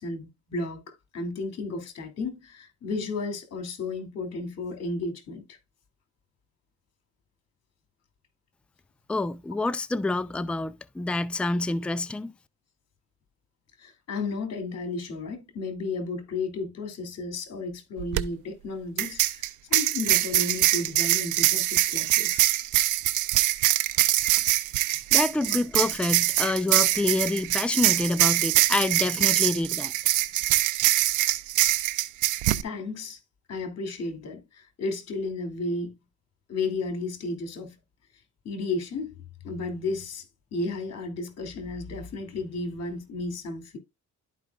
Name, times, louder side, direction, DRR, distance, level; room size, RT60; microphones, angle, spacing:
voice 1, 0.0-5.6 13.8-22.5 25.5-25.6 32.6-33.2 33.5-35.9 36.5-37.7 38.4-39.1 39.4-43.8, left 3 dB, 55° left, 2.7 m, -33 dB
voice 2, 9.1-12.3 25.1-29.9, left 2 dB, 5° left, 0.4 m, -27 dB
sound 1, 18.0-18.2 19.0-32.6, right 15 dB, 85° right, 0.6 m, -23 dB
12.0 x 5.0 x 2.4 m
cardioid pair, 90°, 30 cm